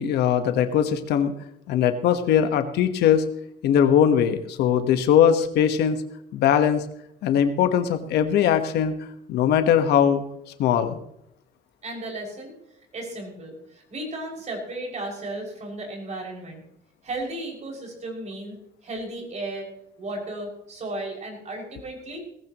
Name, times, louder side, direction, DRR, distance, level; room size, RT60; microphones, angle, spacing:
voice 1, 0.0-1.3 1.7-3.3 3.6-6.0 6.3-6.8 7.2-9.0 9.3-10.2 10.6-11.0, left 9 dB, 75° left, 9 dB, 1.4 m, -20 dB
voice 2, 11.8-12.5 12.9-16.6 17.0-18.6 18.8-19.7 20.0-22.2, right 2 dB, 40° right, 1 dB, 6.2 m, -34 dB
18.5 x 15.5 x 3.1 m, 0.77 s
cardioid pair, 110°, 17 cm